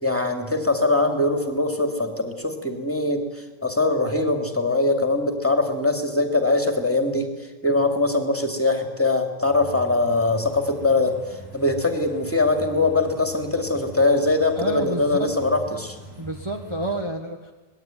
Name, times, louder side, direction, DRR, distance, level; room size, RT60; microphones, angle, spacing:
voice 1, 0.0-7.3 7.6-11.2 11.5-16.0, left 2 dB, 10° left, 4 dB, 2.8 m, -22 dB
sound 1, 9.4-17.0, right 2 dB, 50° right, 6.7 m, -42 dB
voice 2, 14.5-15.3 16.2-17.5, right 1 dB, 20° right, 1 dB, 1.6 m, -29 dB
25.5 x 20.0 x 9.3 m, 1.2 s
omnidirectional pair, 1.4 m